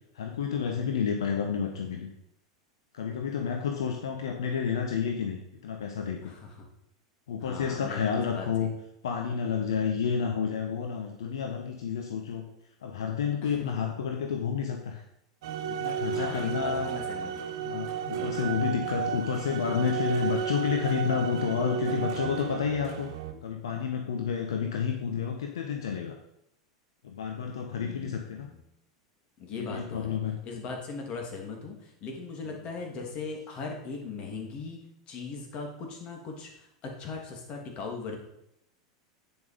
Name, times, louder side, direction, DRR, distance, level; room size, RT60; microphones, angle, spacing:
voice 1, 0.1-2.1 2.9-6.2 7.3-8.7 9.0-12.4 12.8-15.0 15.7-16.9 17.6-23.1 23.4-26.2 27.0-28.5 29.5-30.4, left 7 dB, 75° left, 3 dB, 1.1 m, -30 dB
voice 2, 7.4-8.7 13.4-13.6 16.1-17.5 18.1-18.5 23.3-23.4 27.7-28.6 29.4-30.2 30.4-34.8 35.1-38.2, left 4 dB, 45° left, 2 dB, 2.9 m, -39 dB
sound 1, 15.4-23.3, right 8 dB, 65° right, 1.2 m, -33 dB
8.7 x 7.2 x 5.1 m, 0.79 s
hypercardioid pair, 90°, 3 cm